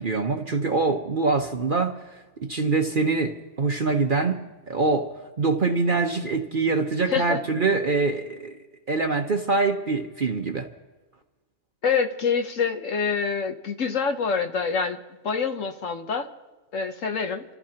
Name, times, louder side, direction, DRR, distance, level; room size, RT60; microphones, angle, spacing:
voice 1, 0.0-5.1 5.4-8.6 8.9-10.7, right 3 dB, 45° right, 4 dB, 0.8 m, -24 dB
voice 2, 7.1-7.4 11.8-15.0 15.2-16.3 16.7-17.4, left 5 dB, 60° left, 6 dB, 1.1 m, -26 dB
28.5 x 14.5 x 2.9 m, 1.2 s
omnidirectional pair, 1.6 m